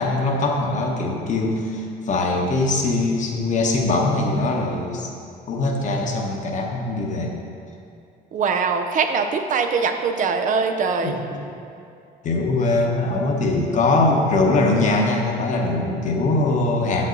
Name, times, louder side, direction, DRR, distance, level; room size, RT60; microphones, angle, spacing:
voice 1, 0.0-5.1 5.5-7.3 11.0-11.4 12.2-17.1, left 2 dB, 45° left, 1 dB, 1.0 m, -22 dB
voice 2, 8.3-11.2, right 5 dB, 50° right, 6 dB, 0.5 m, -22 dB
7.3 x 5.4 x 3.9 m, 2.6 s
cardioid pair, 110°, 17 cm